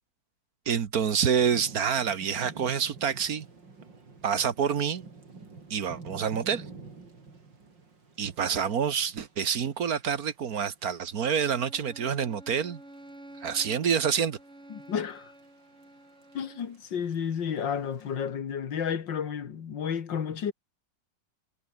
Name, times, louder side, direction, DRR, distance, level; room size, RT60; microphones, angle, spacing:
voice 1, 0.7-3.5 4.2-5.0 5.7-6.6 8.2-12.8 13.4-14.4, right 7 dB, 55° right, 1.7 m, -27 dB
Thunder / Rain, 1.1-18.1, right 4 dB, 90° right, 4.5 m, -50 dB
Bowed string instrument, 11.3-16.8, right 1 dB, 35° right, 8.2 m, -50 dB
voice 2, 14.7-15.3 16.3-20.5, left 7 dB, 85° left, 2.4 m, -31 dB
omnidirectional pair, 1.9 m